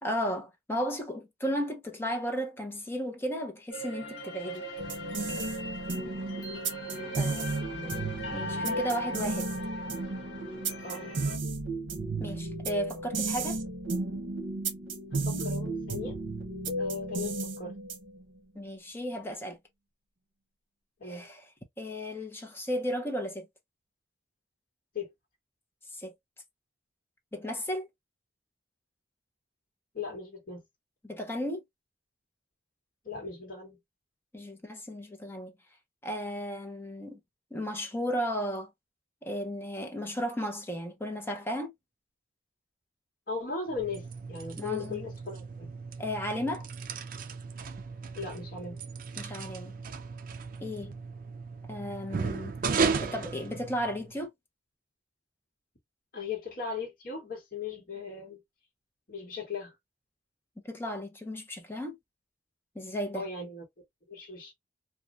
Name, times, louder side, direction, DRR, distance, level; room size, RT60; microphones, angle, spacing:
voice 1, 0.0-4.6 7.1-7.4 8.3-9.5 12.2-13.6 18.5-19.6 21.0-21.4 21.8-23.5 25.9-26.1 27.3-27.9 31.0-31.6 34.3-35.5 36.0-37.2 37.5-38.7 39.2-41.7 44.6-45.0 46.0-46.7 49.2-49.8 50.6-50.9 51.7-54.3 60.6-62.0 62.7-63.2, equal, 10° left, 0.8 m, -34 dB
sound 1, 3.7-11.4, equal, 70° left, 1.2 m, -39 dB
sound 2, 4.8-18.2, right 2 dB, 75° right, 0.9 m, -34 dB
voice 2, 7.1-8.1 10.8-11.1 15.1-16.2 16.8-17.8 21.0-21.3 24.9-25.1 29.9-30.6 33.0-33.8 43.3-45.7 48.2-48.8 56.1-58.4 59.1-59.7 63.1-63.6 64.1-64.5, left 4 dB, 50° left, 1.2 m, -38 dB
sound 3, 43.7-54.2, right 5 dB, 45° right, 0.4 m, -35 dB
3.1 x 2.4 x 2.5 m
head